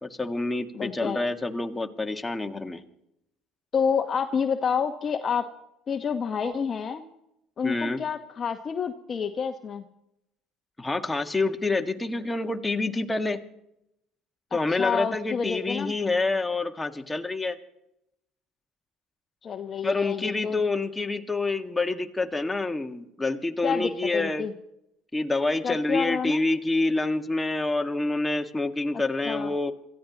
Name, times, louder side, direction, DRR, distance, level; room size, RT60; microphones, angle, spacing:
voice 1, 0.0-2.8 7.6-8.0 10.8-13.4 14.5-17.6 19.8-24.5 25.1-29.7, left 2 dB, 15° left, 5 dB, 1.8 m, -27 dB
voice 2, 0.7-1.2 3.7-5.5 5.9-7.0 7.6-9.8 14.7-15.9 19.4-20.6 23.6-24.5 25.6-26.4 29.2-29.5, left 6 dB, 40° left, 7 dB, 1.2 m, -29 dB
27.5 x 15.0 x 3.0 m, 0.81 s
hypercardioid pair, 70°, 0 cm